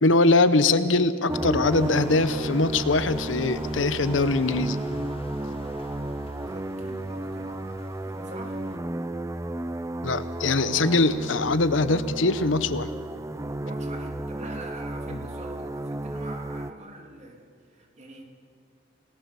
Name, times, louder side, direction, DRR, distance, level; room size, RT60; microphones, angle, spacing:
voice 1, 0.0-4.8 10.0-12.9, left 3 dB, 75° left, 13 dB, 1.0 m, -22 dB
sound 1, 1.3-16.7, right 1 dB, 15° right, 0.6 m, -33 dB
sound 2, 1.7-8.8, left 2 dB, 30° left, 1.5 m, -46 dB
voice 2, 6.5-8.6 13.6-18.2, right 1 dB, 35° right, 2 dB, 3.1 m, -44 dB
30.0 x 18.5 x 7.1 m, 2.2 s
head